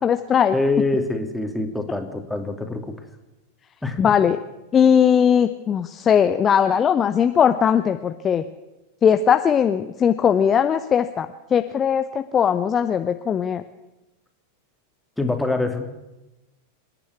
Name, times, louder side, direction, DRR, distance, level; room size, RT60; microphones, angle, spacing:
voice 1, 0.0-0.5 4.0-4.4 4.7-8.4 9.0-13.6, left 8 dB, 25° left, 9 dB, 0.8 m, -19 dB
voice 2, 0.5-3.0 3.8-4.0 15.2-15.9, left 2 dB, 5° left, 4 dB, 2.7 m, -24 dB
26.0 x 10.5 x 9.7 m, 1.0 s
figure-of-eight pair, 90°, 0 cm